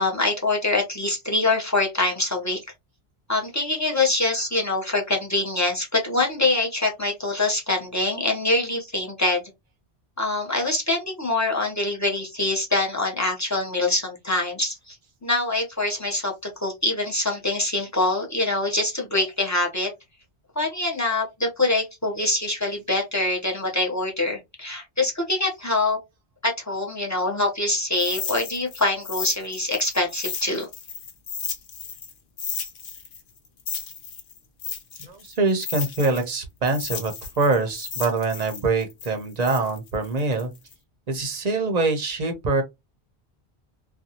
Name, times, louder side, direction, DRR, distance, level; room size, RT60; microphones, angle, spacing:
voice 1, 0.0-2.6 3.3-9.4 10.2-15.0 15.2-16.3 16.6-19.9 20.6-26.0 26.4-30.7, left 2 dB, 20° left, 0.7 m, -24 dB
sound 1, 27.9-32.1 32.4-36.3 36.6-40.7, left 6 dB, 65° left, 0.8 m, -34 dB
voice 2, 35.0-37.1 37.4-40.5 41.1-42.6, right 3 dB, 45° right, 0.7 m, -24 dB
2.6 x 2.2 x 2.8 m
omnidirectional pair, 1.0 m